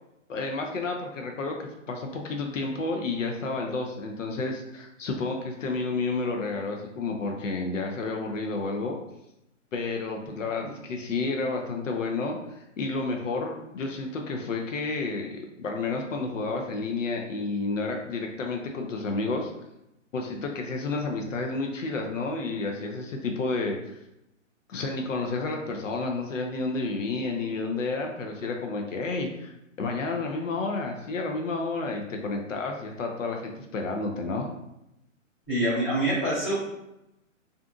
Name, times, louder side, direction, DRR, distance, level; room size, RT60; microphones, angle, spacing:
voice 1, 0.3-9.0 9.7-19.5 20.1-24.0 24.7-34.5, left 3 dB, 70° left, 2 dB, 0.6 m, -31 dB
voice 2, 35.5-36.5, right 1 dB, 5° left, -21 dB, 0.9 m, -25 dB
2.5 x 2.5 x 2.4 m, 0.87 s
hypercardioid pair, 180°, 40 cm